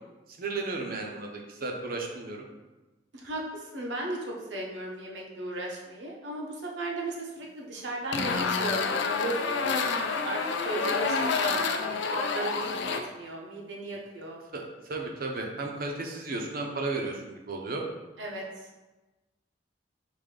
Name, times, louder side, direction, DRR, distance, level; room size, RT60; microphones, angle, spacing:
voice 1, 0.4-2.4 14.5-17.8, right 3 dB, 55° right, 1 dB, 0.7 m, -34 dB
voice 2, 3.1-14.4 18.2-18.4, right 2 dB, 85° right, -1 dB, 0.9 m, -36 dB
sound 1, 8.1-13.0, left 4 dB, 85° left, 0.4 m, -28 dB
5.0 x 2.7 x 3.8 m, 1.1 s
head